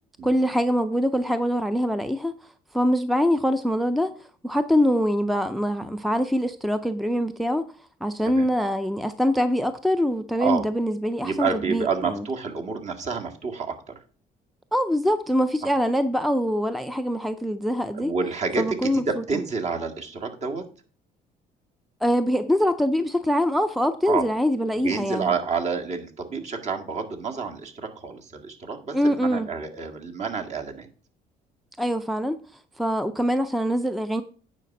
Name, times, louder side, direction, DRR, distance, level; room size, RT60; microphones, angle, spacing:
voice 1, 0.2-2.4 2.7-7.7 8.0-12.2 14.7-18.1 18.6-19.2 22.0-25.3 28.9-29.5 31.8-32.4 32.8-34.2, equal, ahead, 0.5 m, -24 dB
voice 2, 11.2-13.9 15.6-15.7 17.9-20.6 24.1-24.3 24.8-30.9, right 5 dB, 45° right, 1.9 m, -29 dB
9.4 x 5.7 x 5.3 m
cardioid pair, 110°, 17 cm